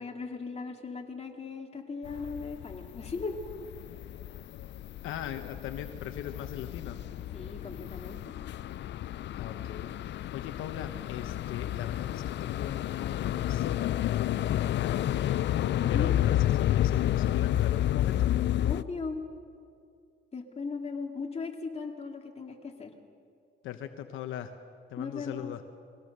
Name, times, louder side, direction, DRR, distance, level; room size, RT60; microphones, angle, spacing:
voice 1, 0.0-3.4 7.3-8.3 15.8-16.1 18.6-19.2 20.3-22.9 24.9-25.6, left 4 dB, 30° left, 2 dB, 2.6 m, -38 dB
sound 1, 2.0-18.8, left 12 dB, 65° left, 0.5 m, -30 dB
voice 2, 5.0-7.0 9.4-18.3 23.6-24.5 24.9-25.6, left 10 dB, 85° left, 8 dB, 1.0 m, -40 dB
22.5 x 17.0 x 6.7 m, 2.3 s
cardioid pair, 90°, 20 cm